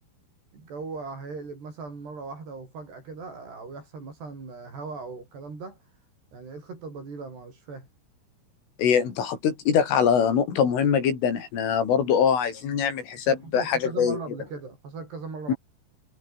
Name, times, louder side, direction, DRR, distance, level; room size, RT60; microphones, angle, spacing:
voice 1, 0.5-5.9 6.3-7.9 11.9-12.2 13.2-15.6, right 4 dB, 55° right, 10.0 m, -39 dB
voice 2, 8.8-14.2 15.5-15.6, left 7 dB, 75° left, 7.0 m, -23 dB
omnidirectional pair, 5.8 m